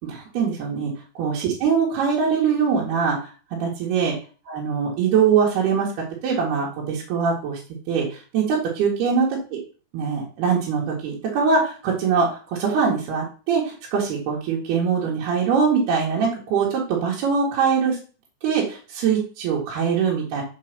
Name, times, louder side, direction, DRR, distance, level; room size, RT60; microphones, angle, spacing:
voice 1, 0.0-0.9 1.2-4.1 4.5-5.9 6.2-7.6 7.9-9.6 9.9-18.0 18.4-20.4, right 6 dB, 70° right, -4 dB, 4.0 m, -22 dB
7.5 x 5.5 x 6.7 m, 0.37 s
omnidirectional pair, 4.9 m